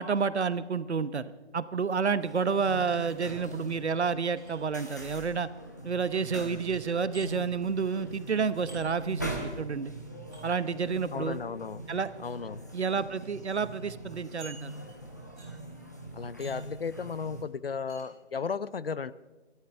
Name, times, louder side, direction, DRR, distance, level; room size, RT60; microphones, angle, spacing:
voice 1, 0.0-5.5 5.8-9.9 10.4-11.4 11.9-12.1 12.7-14.8, right 5 dB, 75° right, 15 dB, 1.0 m, -30 dB
sound 1, 2.2-17.4, right 1 dB, 15° left, 0.9 m, -43 dB
sound 2, 4.3-5.0 7.1-7.3 8.7-8.8 10.3-10.4 11.8-12.0 12.8-12.9 13.2-13.3 14.4-15.0 15.4-15.7 16.4-16.7 17.9-18.1, right 3 dB, ahead, 1.2 m, -50 dB
voice 2, 11.1-11.9 12.2-12.6 16.1-19.1, left 5 dB, 60° left, 18 dB, 0.6 m, -35 dB
25.0 x 12.5 x 3.4 m, 1.3 s
hypercardioid pair, 180°, 34 cm